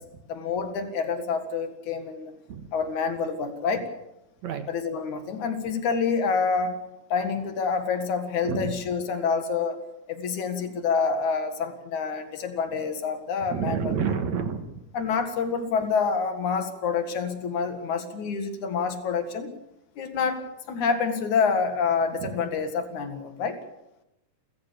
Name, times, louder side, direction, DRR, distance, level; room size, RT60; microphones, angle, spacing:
voice 1, 0.3-2.3 2.7-3.9 4.7-6.8 7.1-9.8 10.1-14.0 14.9-19.5 20.0-23.6, left 5 dB, 65° left, 8 dB, 3.2 m, -27 dB
voice 2, 13.5-14.6 22.2-22.3, right 7 dB, 65° right, 8 dB, 2.6 m, -28 dB
30.0 x 14.5 x 7.0 m, 0.89 s
omnidirectional pair, 3.7 m